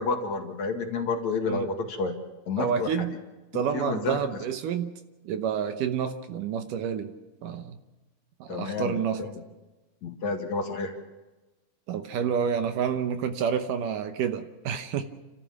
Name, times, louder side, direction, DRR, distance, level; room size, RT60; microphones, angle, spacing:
voice 1, 0.0-2.2 2.5-3.2 3.7-4.2 8.5-9.4 10.0-10.9, left 4 dB, 55° left, 3 dB, 3.1 m, -30 dB
voice 2, 2.6-3.1 3.5-4.9 5.3-7.1 7.4-7.8 8.4-9.2 11.9-15.0, right 7 dB, 70° right, 9 dB, 2.4 m, -29 dB
29.5 x 13.5 x 7.3 m, 1.1 s
omnidirectional pair, 4.2 m